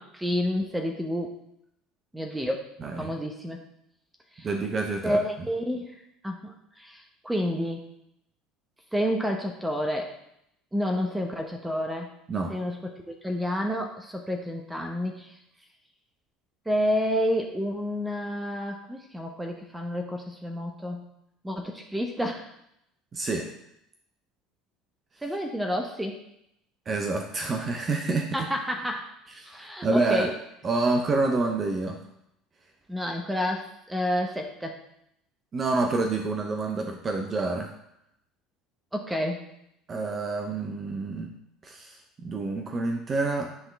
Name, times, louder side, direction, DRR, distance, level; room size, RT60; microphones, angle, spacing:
voice 1, 0.0-1.3 2.1-2.6 3.0-3.6 4.4-4.5 5.0-7.8 8.9-10.1 10.7-12.1 12.5-15.3 16.7-21.0 21.4-22.5 25.2-26.2 28.3-29.2 29.5-30.3 32.9-34.8 38.9-39.4, equal, 10° right, 3 dB, 0.9 m, -29 dB
voice 2, 2.8-3.1 4.4-5.2 12.3-12.5 23.1-23.5 26.9-28.3 29.4-30.3 30.6-32.0 35.5-37.7 39.9-41.3 41.6-43.5, right 3 dB, 35° right, 3 dB, 0.8 m, -28 dB
9.7 x 3.7 x 3.4 m, 0.77 s
hypercardioid pair, 65°, 0 cm